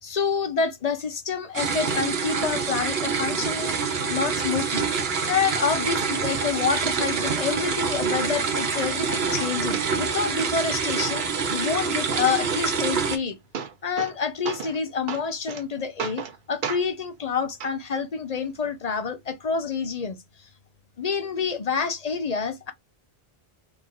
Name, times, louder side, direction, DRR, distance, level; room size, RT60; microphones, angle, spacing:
voice 1, 0.0-3.8 4.1-4.9 5.3-13.4 13.8-20.5 21.0-22.7, left 5 dB, 45° left, 0.6 m, -28 dB
sound 1, 1.5-13.2, right 5 dB, 75° right, 1.1 m, -26 dB
sound 2, 2.4-2.5 3.0-3.1 3.4-3.5 4.0-4.5 5.0-5.6 6.0-6.1 6.5-7.2 7.8-7.9 8.1-8.8 9.1-10.1 10.4-10.9 13.0-13.1 13.3-14.2 14.4-14.8 15.1-15.6 16.0-16.4 16.6-16.8 17.6-17.7 18.6-18.7, right 6 dB, 55° right, 0.8 m, -34 dB
3.8 x 2.9 x 2.6 m
omnidirectional pair, 1.0 m